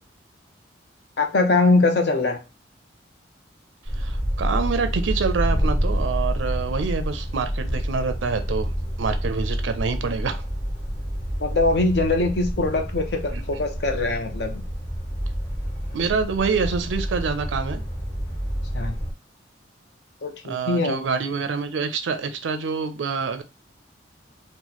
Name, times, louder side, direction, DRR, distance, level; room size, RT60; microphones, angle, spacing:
voice 1, 1.2-2.4 11.4-14.6 18.7-19.0 20.2-21.0, left 3 dB, 60° left, 5 dB, 0.7 m, -22 dB
sound 1, 3.9-19.1, equal, 35° left, 1.3 m, -28 dB
voice 2, 4.0-10.4 13.3-13.4 15.9-17.8 20.5-23.4, right 5 dB, 85° right, 9 dB, 0.4 m, -26 dB
3.0 x 2.2 x 3.9 m, 0.28 s
head